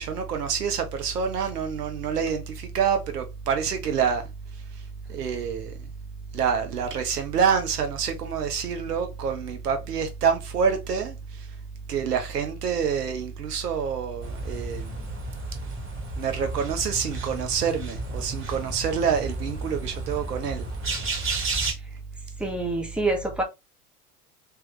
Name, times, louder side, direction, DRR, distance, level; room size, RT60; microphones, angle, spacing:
voice 1, 0.0-4.2 5.1-5.9 6.3-11.5 11.9-15.0 16.2-20.7 21.1-21.5, right 7 dB, 80° right, 0.8 m, -27 dB
sound 1, 14.2-21.7, right 2 dB, 25° right, 1.8 m, -33 dB
voice 2, 22.4-23.4, right 2 dB, ahead, 1.0 m, -26 dB
3.3 x 3.0 x 3.1 m
figure-of-eight pair, 85°, 46 cm